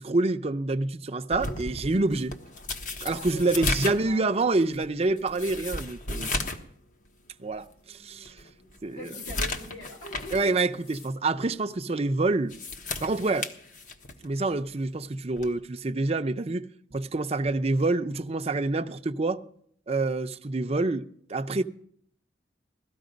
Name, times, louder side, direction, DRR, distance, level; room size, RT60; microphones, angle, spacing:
voice 1, 0.0-2.3 3.0-6.3 7.4-8.3 8.8-9.1 10.3-12.6 13.0-13.5 14.2-16.7 16.9-19.4 19.9-21.6, right 2 dB, 35° right, 0.6 m, -27 dB
sound 1, 1.3-6.7 7.0-7.1 7.7-7.8 8.2-10.5 10.8-11.1 12.3-14.3 15.4-15.6, left 2 dB, 45° left, 1.2 m, -34 dB
voice 2, 3.1-4.3 7.9-8.7 9.0-10.7, left 1 dB, 90° left, 4.8 m, -44 dB
17.5 x 13.5 x 5.2 m
head